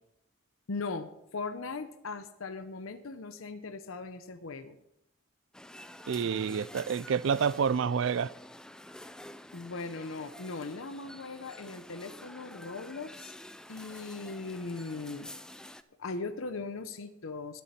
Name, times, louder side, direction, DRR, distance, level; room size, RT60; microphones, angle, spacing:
voice 1, 0.7-4.8 6.2-6.3 9.5-13.3 13.7-15.3 16.0-17.6, left 3 dB, 85° left, 0.8 m, -39 dB
sound 1, 5.5-15.8, left 1 dB, 5° left, 0.4 m, -49 dB
voice 2, 6.1-8.3, right 6 dB, 70° right, 0.4 m, -28 dB
21.0 x 7.1 x 4.3 m
head